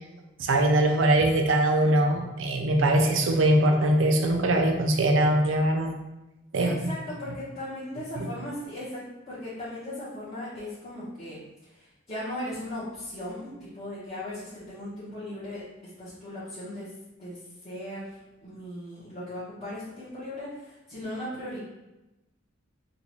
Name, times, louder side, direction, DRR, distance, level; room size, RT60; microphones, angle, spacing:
voice 1, 0.4-5.9 6.5-6.7 8.2-8.3, right 1 dB, 70° right, 3 dB, 0.5 m, -22 dB
voice 2, 6.6-11.4 11.8-15.6 16.0-16.9 17.2-17.4 17.6-21.6, left 1 dB, 30° left, -13 dB, 1.3 m, -37 dB
3.8 x 2.6 x 3.0 m, 0.98 s
head